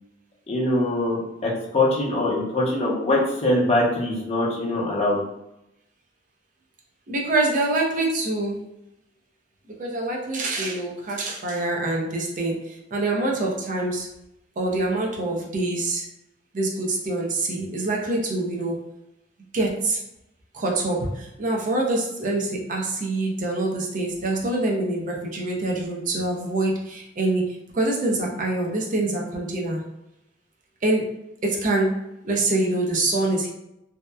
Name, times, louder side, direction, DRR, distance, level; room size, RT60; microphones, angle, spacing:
voice 1, 0.5-5.2, left 1 dB, 35° left, -5 dB, 0.7 m, -23 dB
voice 2, 7.1-8.6 9.8-14.1 14.6-16.1 16.5-18.8 19.5-20.0 20.5-29.8 30.8-31.0 31.4-31.9 32.2-33.5, right 2 dB, 45° right, -1 dB, 0.5 m, -25 dB
2.7 x 2.1 x 2.2 m, 0.86 s
head